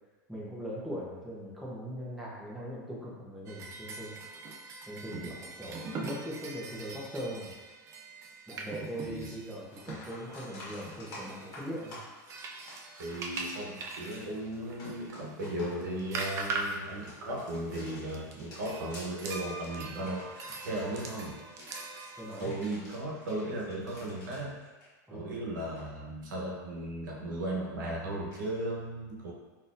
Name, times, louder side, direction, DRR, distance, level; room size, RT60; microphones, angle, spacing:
voice 1, 0.3-4.1 4.9-7.5 8.5-12.0 22.2-22.5 25.1-25.3, equal, ahead, -7 dB, 0.7 m, -40 dB
sound 1, 3.5-22.4, right 3 dB, 30° right, 0.4 m, -42 dB
voice 2, 9.0-9.4 13.0-21.4 22.4-24.5 25.1-29.3, right 1 dB, 90° right, -4 dB, 0.9 m, -36 dB
sound 2, 9.2-9.3 9.7-25.3 25.6-25.9 28.3-28.4, left 1 dB, 40° left, 1.4 m, -50 dB
3.8 x 2.7 x 2.5 m, 1.2 s
supercardioid pair, 135°, 10 cm